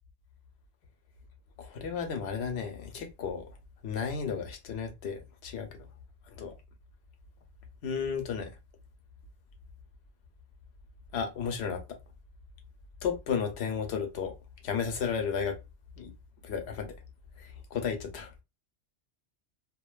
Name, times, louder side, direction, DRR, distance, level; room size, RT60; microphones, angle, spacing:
voice 1, 1.6-3.6 3.8-5.9 6.3-6.5 7.8-8.5 11.1-11.8 13.0-14.3 14.6-15.6 16.0-16.1 16.4-17.0 17.4-18.4, left 6 dB, 70° left, 0.9 m, -33 dB
2.5 x 2.2 x 2.3 m
omnidirectional pair, 1.2 m